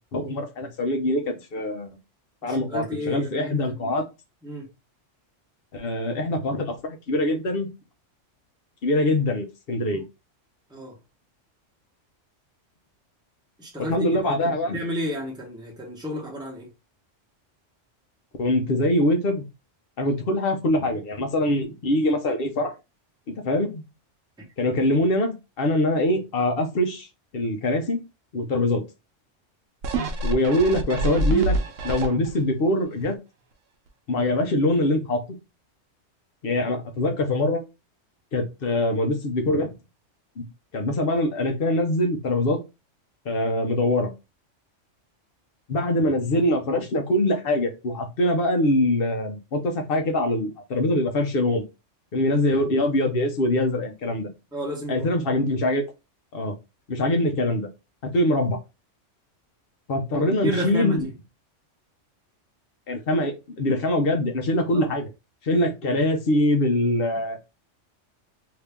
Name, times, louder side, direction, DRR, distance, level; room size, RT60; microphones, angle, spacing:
voice 1, 0.1-1.9 2.4-4.0 5.7-7.7 8.8-10.0 13.8-14.8 18.4-19.4 20.0-22.7 23.3-23.8 24.6-27.1 27.3-28.0 28.3-28.8 30.2-31.5 31.8-33.1 34.1-35.2 36.4-37.6 38.3-39.7 40.4-40.5 40.7-42.6 43.2-44.1 45.7-51.6 52.1-54.3 54.9-55.8 56.3-56.5 56.9-57.7 58.0-58.6 59.9-61.1 62.9-65.1 65.4-67.4, left 1 dB, 55° left, 0.9 m, -23 dB
voice 2, 2.4-3.9 4.4-4.7 9.9-10.0 10.7-11.0 13.6-14.1 14.4-16.7 54.5-55.0 55.3-55.4 60.1-61.1 64.7-64.9, equal, 5° right, 1.0 m, -32 dB
sound 1, 29.8-32.5 33.0-33.1, right 2 dB, 90° right, 1.0 m, -26 dB
2.9 x 2.7 x 3.5 m
omnidirectional pair, 1.3 m